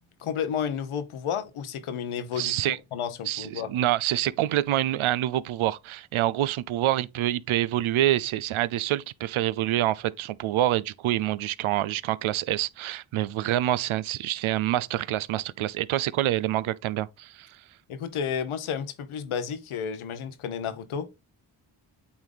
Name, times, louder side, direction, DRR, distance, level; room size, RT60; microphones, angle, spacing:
voice 1, 0.2-3.7 17.9-21.1, left 7 dB, 80° left, 1.1 m, -32 dB
voice 2, 2.4-2.8 3.3-17.5, right 13 dB, 75° right, 0.6 m, -26 dB
8.6 x 3.6 x 3.9 m
supercardioid pair, 40°, 48 cm